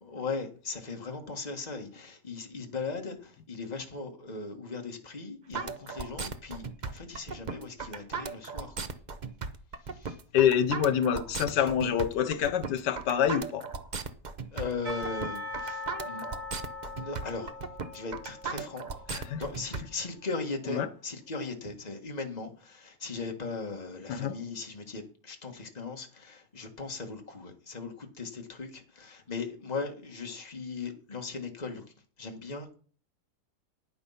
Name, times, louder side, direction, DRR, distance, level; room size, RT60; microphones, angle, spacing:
voice 1, 0.0-8.9 9.8-10.2 11.5-11.6 14.5-16.3 16.8-17.5 17.9-18.9 19.3-31.8 32.2-32.7, left 4 dB, 25° left, 1.6 m, -38 dB
sound 1, 5.5-19.8, right 5 dB, 40° right, 0.6 m, -37 dB
voice 2, 10.3-13.6 19.1-19.4 20.7-20.9 24.1-24.4, left 9 dB, 85° left, 1.5 m, -26 dB
Percussion / Church bell, 14.9-19.9, left 3 dB, 60° right, 5.3 m, -41 dB
9.9 x 8.8 x 5.7 m
omnidirectional pair, 1.8 m